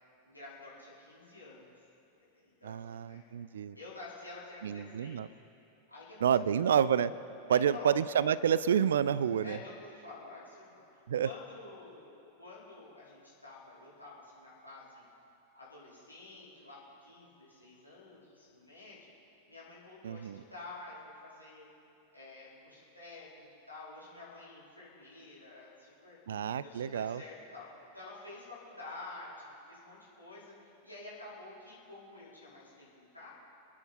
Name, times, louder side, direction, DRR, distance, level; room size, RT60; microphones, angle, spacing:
voice 1, 0.2-1.7 2.3-3.2 3.7-5.3 5.9-6.5 7.5-7.9 9.4-10.8 11.2-15.0 15.5-19.1 19.5-21.7 22.1-27.7 27.9-33.3, left 2 dB, 85° left, -9 dB, 4.8 m, -50 dB
voice 2, 2.6-3.8 4.6-5.3 6.2-7.1 7.5-9.6 11.1-11.3 20.0-20.4 26.3-27.2, right 8 dB, 65° right, 18 dB, 0.4 m, -29 dB
28.0 x 10.0 x 4.5 m, 2.8 s
figure-of-eight pair, 90°, 0 cm